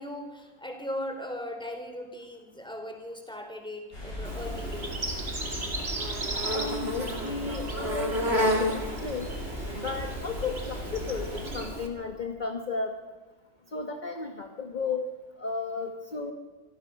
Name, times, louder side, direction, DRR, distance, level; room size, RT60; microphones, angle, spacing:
voice 1, 0.0-5.1, left 1 dB, 5° left, 4 dB, 2.8 m, -38 dB
sound 1, 3.9-11.6, left 1 dB, 90° left, 7.9 m, -38 dB
Insect, 4.2-11.9, equal, 45° right, 2.8 m, -32 dB
voice 2, 6.5-9.3 9.7-12.9 13.7-15.1 15.4-16.3, left 4 dB, 35° left, 4 dB, 1.5 m, -34 dB
26.0 x 16.0 x 6.5 m, 1.3 s
omnidirectional pair, 1.5 m